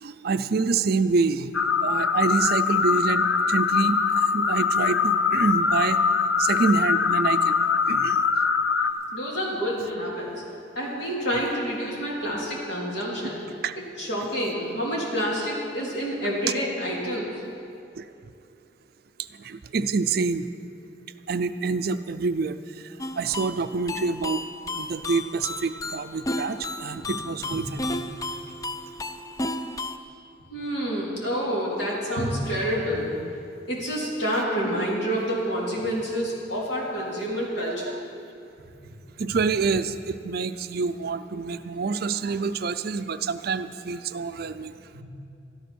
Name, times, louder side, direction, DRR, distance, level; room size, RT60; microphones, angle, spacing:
voice 1, 0.0-1.5 1.8-6.0 6.4-7.5 7.9-8.2 13.6-13.7 18.0-18.1 19.4-20.5 21.3-22.6 23.2-24.4 24.7-27.8 37.6-38.0 39.2-44.7, right 4 dB, 55° right, 11 dB, 0.4 m, -27 dB
sound 1, 1.5-8.9, left 5 dB, 80° left, 0.7 m, -23 dB
voice 2, 9.1-10.3 10.8-13.4 14.0-17.3 30.5-33.1 33.7-38.0 44.9-45.0, equal, 65° left, -5 dB, 3.5 m, -28 dB
sound 2, 23.0-30.0, left 2 dB, 20° left, 0.4 m, -33 dB
13.0 x 12.0 x 6.2 m, 2.6 s
head